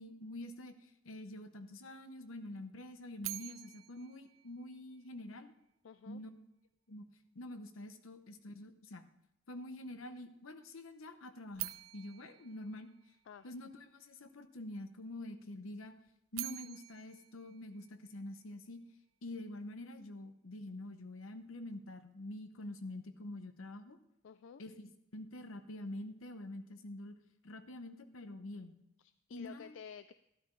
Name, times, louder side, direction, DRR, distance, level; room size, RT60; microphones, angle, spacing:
voice 1, 0.0-5.5 6.1-6.3 6.9-7.0 7.3-9.0 9.5-12.9 13.4-15.9 16.3-18.8 19.2-24.0 24.6-27.2 27.4-28.8 29.3-29.8, left 1 dB, 85° left, 9 dB, 0.9 m, -46 dB
sound 1, 3.2-5.3 11.5-13.7 16.1-18.5, right 17 dB, 80° right, 0.4 m, -47 dB
voice 2, 5.8-6.2 13.3-13.5 24.2-24.6 29.0-30.1, left 7 dB, 65° left, 12 dB, 0.3 m, -51 dB
12.5 x 12.0 x 3.2 m, 0.82 s
head